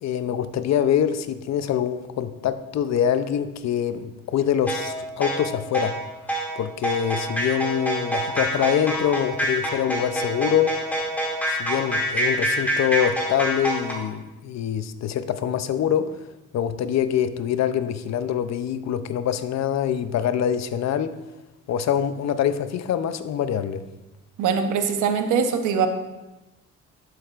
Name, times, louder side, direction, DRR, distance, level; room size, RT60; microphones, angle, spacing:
voice 1, 0.0-6.0 6.6-10.8 11.5-16.1 16.5-21.2 21.7-23.8, left 9 dB, 60° left, 12 dB, 0.6 m, -24 dB
sound 1, 4.7-13.9, right 1 dB, 5° left, 2.4 m, -26 dB
voice 2, 24.4-25.9, right 6 dB, 85° right, 7 dB, 0.9 m, -22 dB
11.0 x 8.0 x 2.5 m, 1.0 s
cardioid pair, 90°, 30 cm